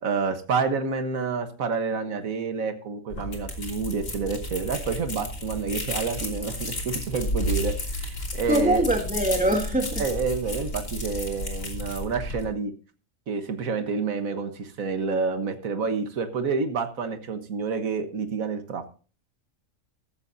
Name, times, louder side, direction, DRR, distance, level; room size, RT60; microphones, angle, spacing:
voice 1, 0.0-8.8 10.0-12.7 13.3-18.9, right 5 dB, 85° right, 1.7 m, -29 dB
sound 1, 3.1-12.5, left 1 dB, 75° left, 3.5 m, -32 dB
voice 2, 8.5-10.0, right 1 dB, 5° right, 2.8 m, -23 dB
14.5 x 14.5 x 2.7 m
omnidirectional pair, 1.4 m